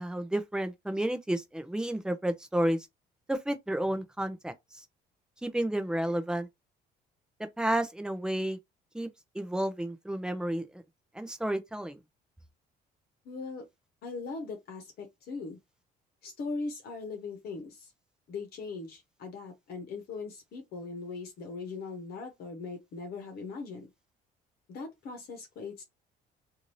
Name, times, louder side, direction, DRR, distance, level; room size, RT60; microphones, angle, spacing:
voice 1, 0.0-2.8 3.3-4.5 5.4-6.5 7.6-8.6 8.9-9.1 9.3-10.8 11.1-12.0, right 1 dB, 5° right, 0.5 m, -31 dB
voice 2, 13.2-13.6 14.0-15.6 16.2-17.9 18.3-23.9 24.7-25.8, left 4 dB, 65° left, 1.0 m, -40 dB
2.7 x 2.6 x 3.1 m
cardioid pair, 110°, 17 cm